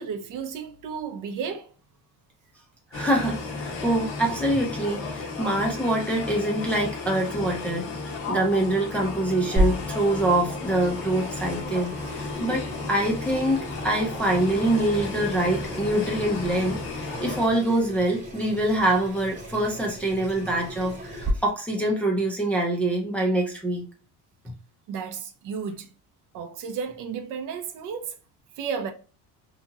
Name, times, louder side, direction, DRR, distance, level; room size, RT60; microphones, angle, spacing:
voice 1, 0.0-1.7 24.9-25.9 26.3-28.2 28.5-28.9, right 6 dB, 50° right, 0.5 m, -33 dB
sound 1, 2.9-17.5, left 3 dB, 35° left, 0.7 m, -33 dB
voice 2, 2.9-7.9 8.3-23.8, right 1 dB, 5° left, 0.4 m, -25 dB
Water tap faucet / Sink (filling or washing), 9.6-21.3, equal, 25° right, 1.2 m, -34 dB
2.8 x 2.7 x 2.3 m
cardioid pair, 155°, 41 cm